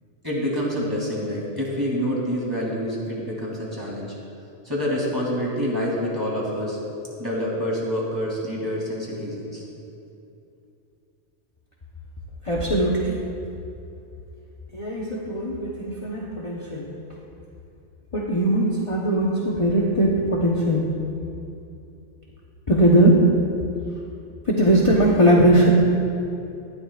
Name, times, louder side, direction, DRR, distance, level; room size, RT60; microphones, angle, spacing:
voice 1, 0.2-4.1 4.6-6.8 7.2-9.7, equal, 15° right, -5 dB, 3.0 m, -27 dB
voice 2, 12.4-13.2 14.7-16.9 18.1-20.8 22.7-23.2 24.4-25.9, right 1 dB, 30° left, -4 dB, 1.0 m, -19 dB
19.0 x 12.0 x 2.5 m, 2.7 s
omnidirectional pair, 1.2 m